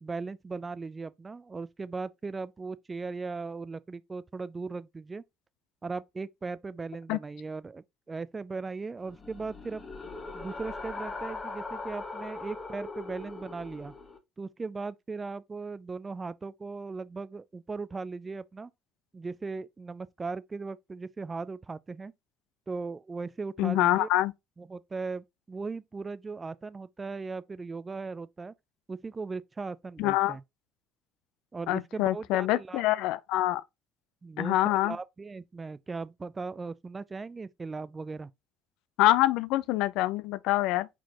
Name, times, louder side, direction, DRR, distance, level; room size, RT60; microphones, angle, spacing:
voice 1, 0.0-5.2 5.8-9.8 10.3-13.9 14.4-18.7 19.1-22.1 22.7-24.1 24.6-28.5 28.9-30.4 31.5-32.8 34.2-34.6 34.8-38.3, right 4 dB, 25° right, 0.4 m, -38 dB
sound 1, 9.1-14.2, left 3 dB, 30° left, 1.2 m, -40 dB
voice 2, 23.6-24.3 30.0-30.4 31.7-33.6 34.4-35.0 39.0-40.9, left 15 dB, 70° left, 0.4 m, -25 dB
4.6 x 4.1 x 2.9 m
hypercardioid pair, 65°, 0 cm